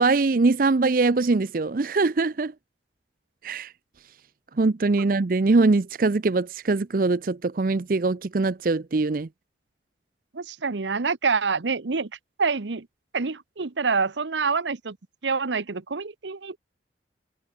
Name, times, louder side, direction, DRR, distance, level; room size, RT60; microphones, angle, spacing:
voice 1, 0.0-2.5 3.4-3.7 4.6-9.3, right 3 dB, 50° right, 0.5 m, -22 dB
voice 2, 10.3-12.1 12.4-12.9 13.1-15.0 15.2-16.6, right 4 dB, 85° right, 0.9 m, -26 dB
head